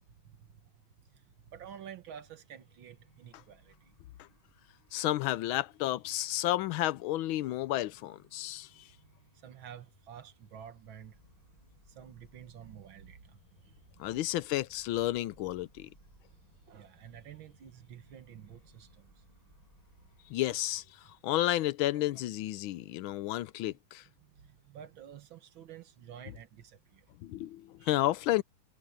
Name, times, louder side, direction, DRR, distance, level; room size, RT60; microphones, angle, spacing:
voice 1, 1.5-3.9 9.4-11.2 12.0-13.4 16.7-19.1 24.4-27.0 27.8-28.1, right 9 dB, 70° right, 2.0 m, -50 dB
sound 1, 2.1-21.1, left 1 dB, 15° left, 8.0 m, -66 dB
voice 2, 4.9-8.7 14.0-15.9 20.3-20.8 21.2-24.0 27.2-28.4, left 15 dB, 80° left, 1.4 m, -31 dB
sound 2, 11.0-20.7, right 1 dB, 40° right, 7.0 m, -65 dB
omnidirectional pair, 2.3 m